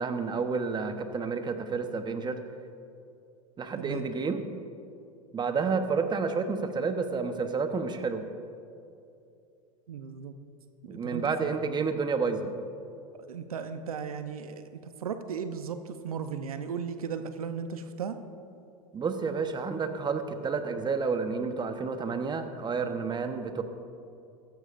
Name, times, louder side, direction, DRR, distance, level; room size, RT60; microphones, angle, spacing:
voice 1, 0.0-2.4 3.6-4.4 5.3-8.2 10.9-12.5 18.9-23.6, right 5 dB, 25° right, 8 dB, 1.0 m, -30 dB
voice 2, 3.8-4.1 9.9-10.3 10.9-11.6 13.2-14.6 15.0-18.2, right 6 dB, 90° right, 9 dB, 0.7 m, -36 dB
15.5 x 13.5 x 2.6 m, 2.6 s
hypercardioid pair, 95°, 18 cm